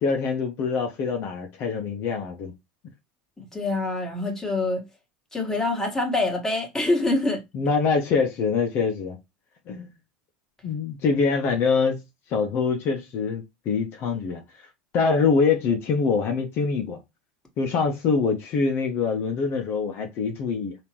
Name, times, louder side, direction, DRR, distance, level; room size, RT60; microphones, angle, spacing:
voice 1, 0.0-2.5 7.5-9.2 9.7-9.9 10.6-12.0 12.3-14.4 14.9-17.0 17.6-20.8, left 5 dB, 50° left, 0.9 m, -24 dB
voice 2, 3.4-4.8 5.3-7.4, left 2 dB, 10° left, 1.5 m, -25 dB
3.6 x 2.9 x 2.9 m
hypercardioid pair, 90°, 5 cm